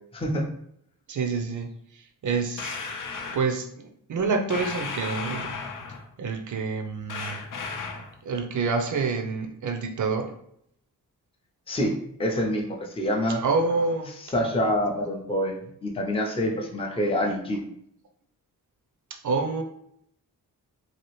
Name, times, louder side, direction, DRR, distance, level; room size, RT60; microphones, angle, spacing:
voice 1, 0.1-0.5 11.7-13.4 14.2-17.6, equal, 15° left, 0 dB, 0.5 m, -26 dB
voice 2, 1.1-2.8 3.3-5.6 6.2-7.4 8.2-10.3 13.4-14.1 19.1-19.6, right 4 dB, 55° right, 5 dB, 0.6 m, -27 dB
sound 1, 2.6-3.5 4.5-6.1 7.1-8.1, left 5 dB, 65° left, 0.6 m, -34 dB
2.8 x 2.4 x 3.1 m, 0.72 s
cardioid pair, 85°, 36 cm